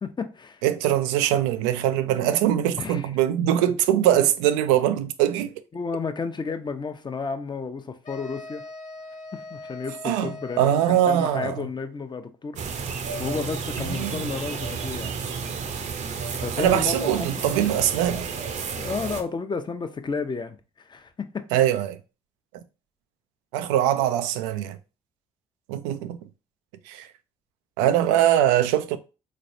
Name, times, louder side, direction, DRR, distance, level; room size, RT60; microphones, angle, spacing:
voice 1, 0.0-0.6 2.1-2.4 2.7-3.1 5.7-8.6 9.3-12.9 13.2-15.2 16.4-17.5 18.7-21.5, left 5 dB, 30° left, 0.7 m, -32 dB
voice 2, 0.6-5.5 10.0-10.3 10.6-11.7 13.9-14.2 16.2-16.3 16.6-18.3 21.5-22.0 23.5-24.8 25.7-26.2 26.9-27.1 27.8-29.0, right 11 dB, 85° right, 0.4 m, -22 dB
sound 1, 8.0-11.7, left 2 dB, 55° left, 1.0 m, -41 dB
sound 2, 12.6-19.2, right 5 dB, 55° right, 0.7 m, -31 dB
3.9 x 3.2 x 2.6 m
hypercardioid pair, 50°, 15 cm